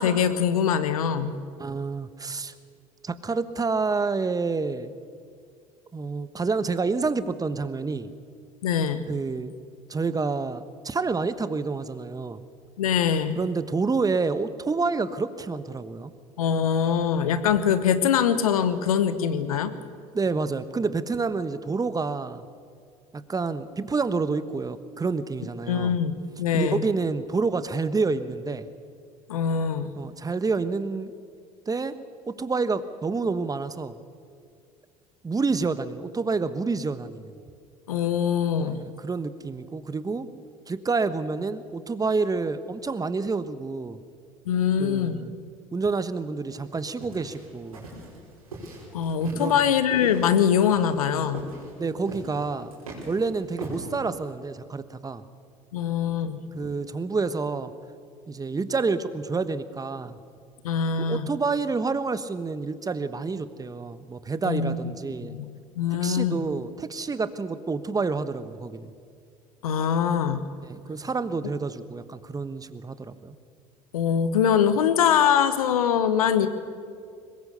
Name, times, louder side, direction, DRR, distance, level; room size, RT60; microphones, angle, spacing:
voice 1, 0.0-1.4 8.6-9.0 12.8-13.4 16.4-19.7 25.7-26.8 29.3-29.9 37.9-38.8 44.5-45.2 48.9-51.5 55.7-56.4 60.6-61.3 64.4-64.8 65.2-66.4 69.6-70.4 73.9-76.5, left 8 dB, 80° left, 12 dB, 1.2 m, -23 dB
voice 2, 1.6-2.5 3.0-4.9 5.9-8.1 9.1-9.5 9.9-12.4 13.4-16.1 20.1-22.4 23.1-25.9 26.5-28.7 30.0-31.1 31.7-31.9 32.3-34.0 35.2-37.3 38.6-40.3 40.7-44.0 44.8-45.3 45.7-47.8 49.3-49.5 51.8-52.7 53.1-55.2 56.5-57.7 58.3-60.2 61.1-65.4 66.0-68.9 70.6-73.4, right 4 dB, 20° right, 13 dB, 1.2 m, -28 dB
sound 1, 46.5-54.3, right 1 dB, 90° right, 5.1 m, -41 dB
22.0 x 20.0 x 6.8 m, 2.3 s
hypercardioid pair, 65°, 18 cm